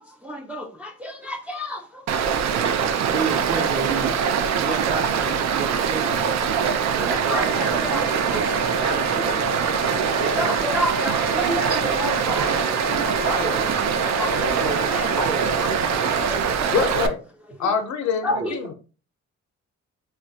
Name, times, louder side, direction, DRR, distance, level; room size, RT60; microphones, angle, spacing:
voice 1, 0.2-2.6 5.5-5.9 7.3-8.4 9.2-9.9 10.4-12.5 14.1-15.1 15.8-16.7 18.2-18.7, equal, 5° right, 0.4 m, -31 dB
Stream, 2.1-17.1, right 7 dB, 65° right, 0.5 m, -23 dB
voice 2, 2.6-6.2 6.6-10.8 11.4-16.1 18.4-18.5, right 3 dB, 45° right, 0.9 m, -32 dB
sound 1, 7.4-16.3, right 1 dB, 80° right, 0.9 m, -31 dB
voice 3, 16.7-17.2 17.6-18.7, left 6 dB, 70° left, 0.7 m, -24 dB
2.4 x 2.1 x 3.9 m
cardioid pair, 90°, 30 cm